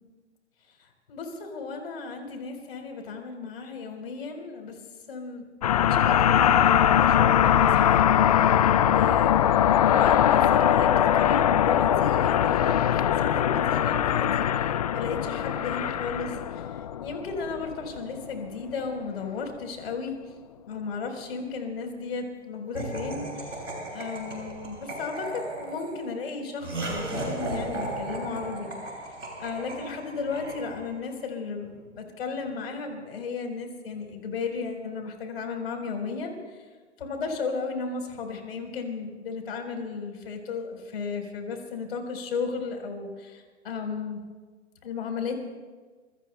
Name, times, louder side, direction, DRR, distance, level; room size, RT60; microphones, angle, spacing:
voice 1, 1.1-4.7 5.1-5.4 5.8-14.4 14.9-20.2 20.7-28.7 29.4-36.6 37.0-44.2 44.8-45.3, left 4 dB, 55° left, 4 dB, 4.1 m, -34 dB
sound 1, 5.6-18.3, left 10 dB, 35° left, 0.4 m, -21 dB
Laughter, 22.7-31.1, right 1 dB, 85° right, 7.0 m, -36 dB
27.0 x 23.0 x 2.2 m, 1.4 s
figure-of-eight pair, 130°, 36 cm